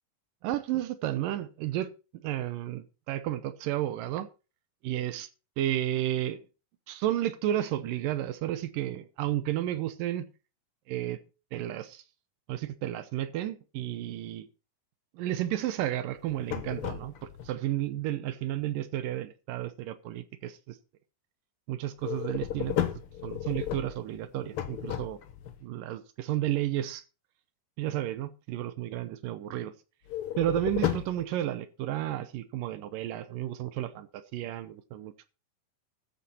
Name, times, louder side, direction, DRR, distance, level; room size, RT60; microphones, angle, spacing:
voice 1, 0.4-1.9 2.2-4.3 4.8-5.3 5.6-6.4 6.9-10.3 10.9-11.2 11.5-12.0 12.5-14.5 15.1-20.8 21.7-22.9 23.2-25.2 25.6-27.0 27.8-29.7 30.4-35.3, right 13 dB, 80° right, 2.5 m, -32 dB
sound 1, 16.2-17.5 22.0-25.5 30.1-31.3, left 11 dB, 60° left, 1.5 m, -33 dB
14.0 x 8.7 x 4.2 m
omnidirectional pair, 3.9 m